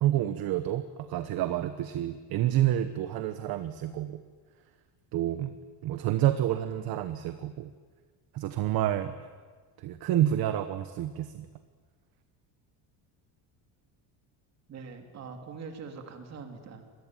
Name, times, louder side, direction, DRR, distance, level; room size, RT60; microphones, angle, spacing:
voice 1, 0.0-4.2 5.1-5.5 5.8-7.7 8.3-9.1 9.8-11.5, right 12 dB, 50° right, 10 dB, 1.1 m, -28 dB
voice 2, 14.7-17.0, right 5 dB, 35° right, 5 dB, 3.0 m, -43 dB
25.5 x 21.0 x 9.2 m, 1.5 s
cardioid pair, 180°, 46 cm